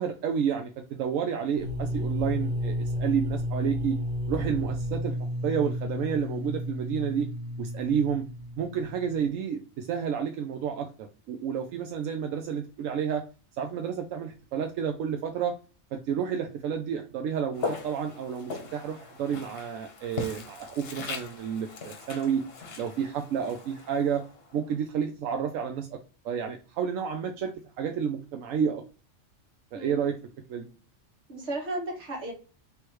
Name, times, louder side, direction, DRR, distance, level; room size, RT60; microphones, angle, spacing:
voice 1, 0.0-4.0 4.3-5.2 5.4-7.3 7.6-8.3 8.6-13.2 13.6-15.5 15.9-22.4 22.8-24.2 24.5-26.0 26.2-27.5 27.8-28.8 29.7-30.2 30.5-30.7, right 7 dB, 85° right, 4 dB, 1.0 m, -30 dB
sound 1, 1.5-9.3, equal, 40° right, 0.9 m, -32 dB
Walk footsteps, 17.5-24.7, left 4 dB, 55° left, 1.0 m, -39 dB
voice 2, 29.7-30.1 31.3-32.3, right 2 dB, 60° right, 0 dB, 1.8 m, -34 dB
3.4 x 3.1 x 4.3 m, 0.35 s
omnidirectional pair, 1.3 m